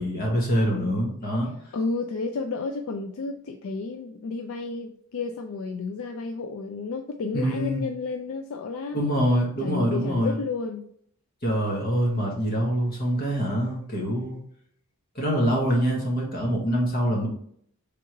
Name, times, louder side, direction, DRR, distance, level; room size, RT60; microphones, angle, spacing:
voice 1, 0.0-1.5 7.3-7.9 8.9-10.4 11.4-14.4 15.1-17.3, equal, 40° left, -2 dB, 1.2 m, -25 dB
voice 2, 1.7-9.1 9.6-10.9, left 4 dB, 70° left, 5 dB, 0.3 m, -31 dB
3.6 x 3.0 x 4.6 m, 0.66 s
head